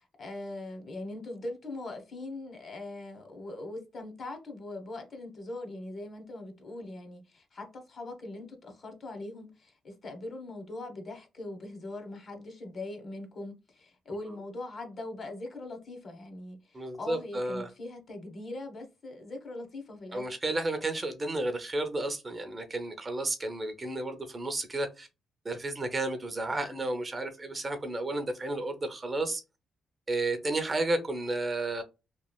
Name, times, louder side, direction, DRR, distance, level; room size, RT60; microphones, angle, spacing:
voice 1, 0.0-20.3, left 2 dB, 45° left, 0.9 m, -41 dB
voice 2, 16.7-17.7 20.1-25.1 25.4-29.4 30.1-31.8, right 2 dB, 25° right, 0.6 m, -32 dB
3.0 x 2.4 x 2.2 m
cardioid pair, 90°, 0 cm